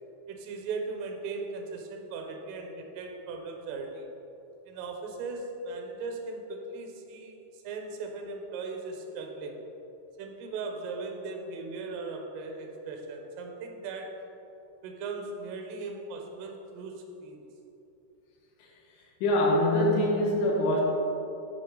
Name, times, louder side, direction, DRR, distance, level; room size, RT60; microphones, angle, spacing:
voice 1, 0.3-4.0 4.7-9.6 10.2-14.2 14.8-17.4, right 3 dB, 85° right, 3 dB, 3.4 m, -38 dB
voice 2, 19.2-20.8, left 1 dB, 75° left, -2 dB, 3.3 m, -24 dB
11.5 x 6.1 x 3.8 m, 2.9 s
omnidirectional pair, 5.8 m